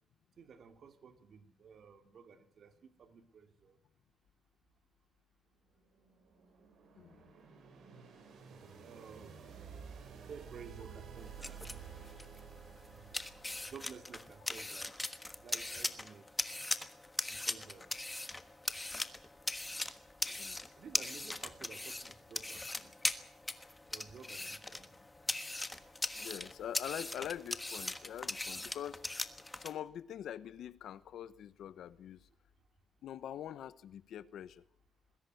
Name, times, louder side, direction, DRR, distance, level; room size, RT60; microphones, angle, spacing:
voice 1, 0.4-2.7 3.0-3.8 8.8-9.4 10.3-11.6 12.9-13.2 13.7-14.9 15.4-16.3 17.3-17.9 20.8-22.9 23.9-24.9, right 6 dB, 60° right, 2.6 m, -53 dB
sound 1, 5.7-14.6, right 7 dB, 80° right, 6.0 m, -52 dB
sound 2, 11.2-29.7, left 2 dB, 15° left, 1.4 m, -40 dB
voice 2, 20.2-20.6 26.1-29.0 29.6-32.2 33.0-34.6, left 10 dB, 85° left, 1.0 m, -44 dB
21.0 x 16.5 x 9.4 m
wide cardioid pair, 140°, 0 cm